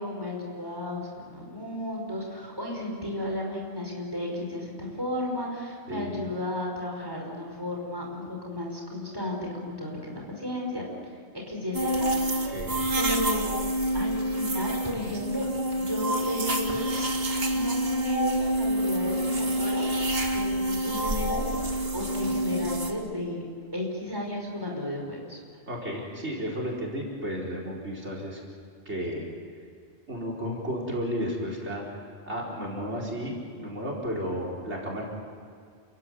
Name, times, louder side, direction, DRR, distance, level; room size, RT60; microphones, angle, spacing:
voice 1, 0.0-12.5 13.0-13.5 13.9-15.5 15.8-17.2 17.5-19.9 20.3-23.5 23.7-25.4, left 1 dB, 20° right, -1 dB, 5.6 m, -34 dB
voice 2, 5.9-6.2 12.5-12.8 25.7-28.4 28.8-29.3 30.1-32.0 32.3-35.0, equal, 80° right, -1 dB, 5.0 m, -33 dB
sound 1, 11.7-22.9, right 1 dB, 60° right, 2.2 m, -27 dB
29.5 x 16.5 x 9.7 m, 2.2 s
omnidirectional pair, 1.2 m